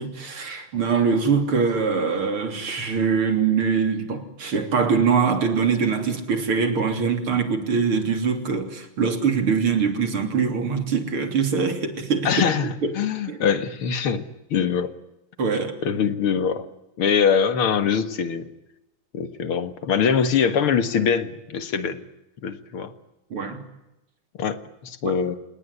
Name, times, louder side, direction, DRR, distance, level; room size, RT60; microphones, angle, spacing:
voice 1, 0.0-12.3 12.8-13.0 13.3-13.4 15.4-15.8 23.3-23.6 25.0-25.2, right 5 dB, 85° right, 7 dB, 4.1 m, -23 dB
voice 2, 12.2-14.2 14.5-14.9 15.8-16.7 17.0-18.5 19.1-22.0 22.4-22.9 24.4-24.6 24.8-25.4, left 7 dB, 85° left, 11 dB, 2.6 m, -23 dB
30.0 x 18.5 x 9.8 m, 0.92 s
omnidirectional pair, 2.3 m